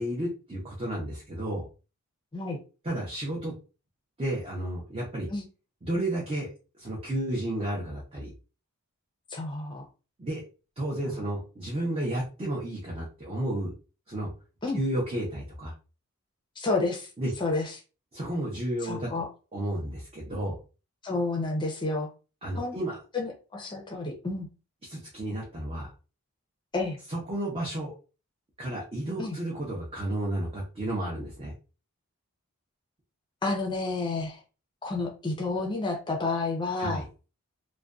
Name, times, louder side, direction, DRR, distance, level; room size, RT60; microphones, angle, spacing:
voice 1, 0.0-1.7 2.8-3.5 4.2-5.3 5.8-8.3 10.2-10.4 10.8-13.7 14.1-14.3 14.7-15.7 17.2-17.3 18.1-19.1 19.5-20.6 22.4-23.0 24.9-25.9 27.1-27.9 28.6-31.5 36.8-37.1, right 1 dB, 25° right, -3 dB, 0.6 m, -32 dB
voice 2, 9.3-9.8 11.0-11.2 14.6-14.8 16.6-17.1 17.4-17.7 18.8-19.3 21.0-22.1 22.6-22.8 23.1-24.5 26.7-27.0 29.2-29.4 33.4-34.4 34.8-37.0, left 3 dB, 20° left, 1 dB, 0.5 m, -30 dB
2.4 x 2.2 x 2.4 m, 0.33 s
head